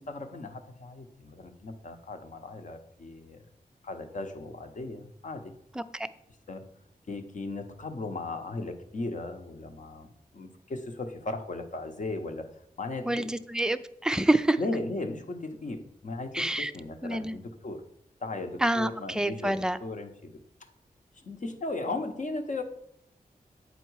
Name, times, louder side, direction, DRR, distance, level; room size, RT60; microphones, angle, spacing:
voice 1, 0.0-3.4 3.8-5.5 6.5-6.7 7.1-13.3 14.6-17.8 18.2-20.3 20.6-20.7 21.1-22.6, left 2 dB, 55° left, 6 dB, 0.9 m, -37 dB
voice 2, 5.8-6.1 13.1-14.6 16.3-16.7 17.0-17.4 18.6-19.8, right 1 dB, 5° right, 11 dB, 0.4 m, -27 dB
8.2 x 4.4 x 4.7 m, 0.73 s
wide cardioid pair, 80°, 15 cm